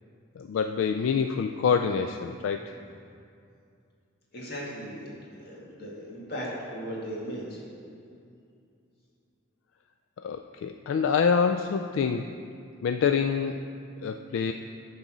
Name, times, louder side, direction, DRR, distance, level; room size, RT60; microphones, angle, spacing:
voice 1, 0.4-2.7 10.2-12.3 12.8-13.6 14.0-14.5, left 6 dB, 80° left, 7 dB, 0.3 m, -26 dB
voice 2, 4.3-5.1 5.4-7.6, equal, 50° left, -5 dB, 2.1 m, -37 dB
11.5 x 4.0 x 6.1 m, 2.5 s
head